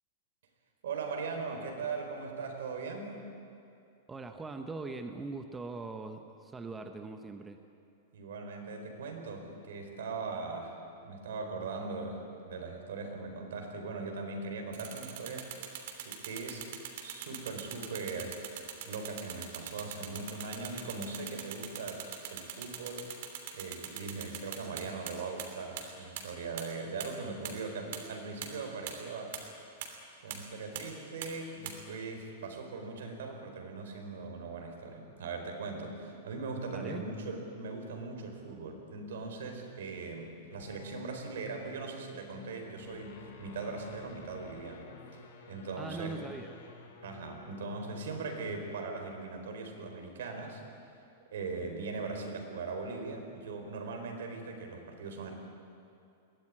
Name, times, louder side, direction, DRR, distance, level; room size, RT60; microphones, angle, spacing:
voice 1, 0.8-3.1 8.1-10.7 11.0-12.2 12.5-15.5 16.0-16.6 17.0-18.3 18.9-22.0 22.3-23.1 23.5-29.3 30.2-35.9 36.2-44.8 45.5-46.2 47.0-50.6 51.3-55.3, right 4 dB, 75° right, 3 dB, 4.6 m, -40 dB
voice 2, 4.1-7.6 36.7-37.0 45.8-46.5, right 3 dB, 10° right, 6 dB, 0.7 m, -41 dB
sound 1, 14.7-25.1 25.4-25.5 25.8-25.9 26.2-26.3 26.6-26.7 27.0-27.1 27.4-27.5 27.9-28.0 28.4-28.5 28.9-29.0 29.3-29.4 29.8-29.9 30.3-30.4 30.8-30.9 31.2-31.3 31.7-31.8, right 11 dB, 50° right, 3.0 m, -40 dB
sound 2, 40.4-48.9, left 5 dB, 65° left, 4.0 m, -52 dB
22.0 x 16.5 x 9.8 m, 2.7 s
supercardioid pair, 180°, 0 cm